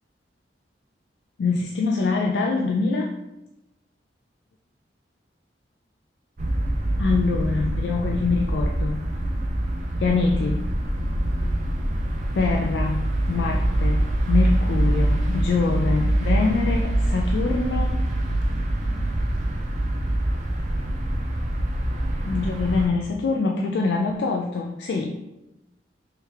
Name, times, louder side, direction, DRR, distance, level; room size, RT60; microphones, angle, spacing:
voice 1, 1.4-3.1 7.0-9.1 10.0-10.7 12.3-18.0 22.2-25.3, left 4 dB, 65° left, 2 dB, 0.3 m, -24 dB
sound 1, 6.4-22.9, right 1 dB, 45° right, 0.5 m, -24 dB
3.2 x 3.2 x 3.4 m, 0.94 s
head